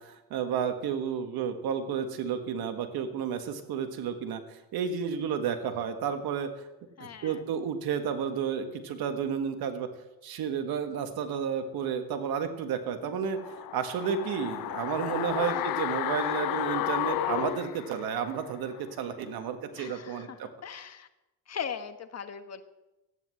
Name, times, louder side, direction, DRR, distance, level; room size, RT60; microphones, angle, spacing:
voice 1, 0.0-6.5 7.0-9.9 10.2-13.4 13.7-20.5, right 7 dB, 75° right, 7 dB, 1.8 m, -32 dB
voice 2, 7.0-7.4 13.0-13.3 15.5-15.6 19.7-21.1 21.5-22.6, left 7 dB, 45° left, 8 dB, 1.6 m, -40 dB
sound 1, 13.4-18.5 18.8-18.9, left 15 dB, 65° left, 0.6 m, -32 dB
15.0 x 9.9 x 7.8 m, 0.98 s
cardioid pair, 95°, 37 cm